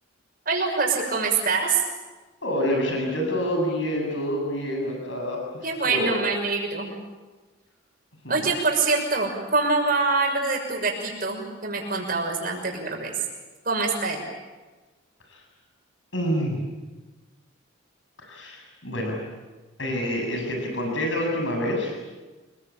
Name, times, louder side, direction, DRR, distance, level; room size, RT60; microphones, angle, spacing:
voice 1, 0.5-1.8 5.6-6.9 8.3-13.1 13.6-14.2, right 4 dB, 45° right, 2 dB, 6.3 m, -25 dB
voice 2, 2.4-6.1 8.2-8.5 15.3-15.4 16.1-16.6 18.2-19.2 19.8-22.0, equal, 70° left, 1 dB, 7.8 m, -27 dB
28.0 x 22.0 x 8.9 m, 1.3 s
head